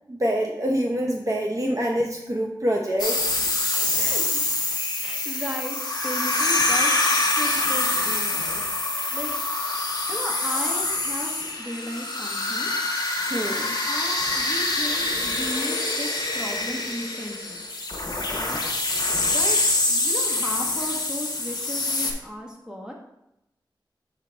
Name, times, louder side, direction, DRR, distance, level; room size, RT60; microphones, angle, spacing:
voice 1, 0.1-3.4 3.9-4.3 13.3-13.8, equal, 40° right, -1 dB, 0.7 m, -26 dB
sound 1, 3.0-22.1, left 2 dB, 50° left, 1.0 m, -25 dB
voice 2, 4.0-4.4 5.0-6.9 7.2-8.6 9.1-9.4 10.1-11.3 11.6-12.7 13.9-17.6 18.4-18.6 19.3-19.6 19.8-22.9, equal, 10° right, -1 dB, 1.4 m, -35 dB
6.5 x 3.9 x 4.6 m, 0.85 s
wide cardioid pair, 65°, 9 cm